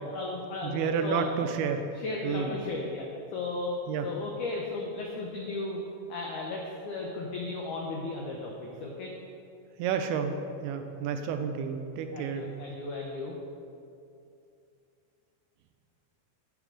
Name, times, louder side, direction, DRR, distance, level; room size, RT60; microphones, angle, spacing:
voice 1, 0.0-1.2 2.0-3.1 3.3-3.7 4.0-5.8 6.1-9.1 12.1-13.3, left 3 dB, 85° left, -1 dB, 1.7 m, -35 dB
voice 2, 0.6-1.8 2.2-2.5 3.9-4.1 9.8-12.5, right 6 dB, 85° right, 6 dB, 2.4 m, -30 dB
12.0 x 7.2 x 3.8 m, 2.6 s
omnidirectional pair, 4.7 m